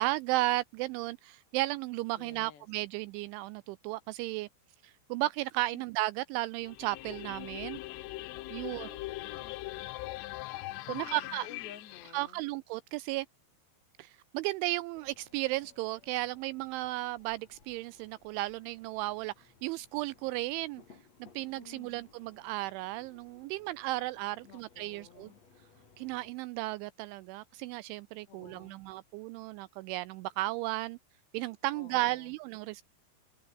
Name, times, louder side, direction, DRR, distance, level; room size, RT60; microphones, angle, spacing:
voice 1, 0.0-4.5 4.8-7.8 8.5-8.9 10.9-11.5 12.1-13.3 14.0-20.8 21.3-25.3 26.0-31.0 31.3-32.8, right 18 dB, 90° right, 2.7 m, -34 dB
voice 2, 2.2-2.7 5.7-5.8 8.6-9.6 10.9-12.4 21.5-22.0 24.4-25.4 28.3-28.8 31.6-32.3, left 8 dB, 60° left, 5.2 m, -53 dB
sound 1, 6.6-12.1, left 19 dB, 80° left, 3.4 m, -41 dB
sound 2, 14.9-26.3, left 5 dB, 35° left, 4.4 m, -62 dB
omnidirectional pair, 6.0 m